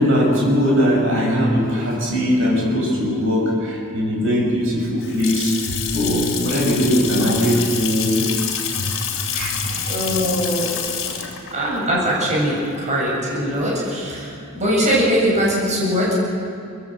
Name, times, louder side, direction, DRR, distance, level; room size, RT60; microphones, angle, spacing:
voice 1, 0.0-8.3 8.8-8.9 9.1-9.9 11.0-11.1, equal, 60° right, -2 dB, 6.7 m, -20 dB
Water tap faucet / Sink (filling or washing) / Splash splatter, 4.8-13.6, left 8 dB, 60° left, 4.0 m, -27 dB
voice 2, 9.9-10.7 11.5-16.1, equal, 35° right, -5 dB, 7.9 m, -21 dB
24.0 x 21.5 x 7.9 m, 2.6 s
head